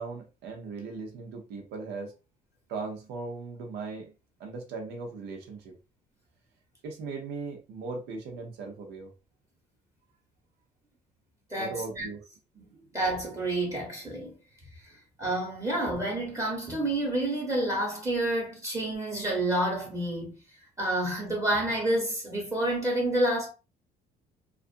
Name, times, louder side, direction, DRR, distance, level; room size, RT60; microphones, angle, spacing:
voice 1, 0.0-2.1 2.7-4.1 4.4-5.8 6.8-9.1 11.6-12.2 12.7-12.9, right 4 dB, 80° right, 0.9 m, -38 dB
voice 2, 11.5-12.1 12.9-14.3 15.2-20.3 20.8-23.5, right 1 dB, 20° right, 1.0 m, -29 dB
2.4 x 2.4 x 2.5 m
cardioid pair, 110°, 17 cm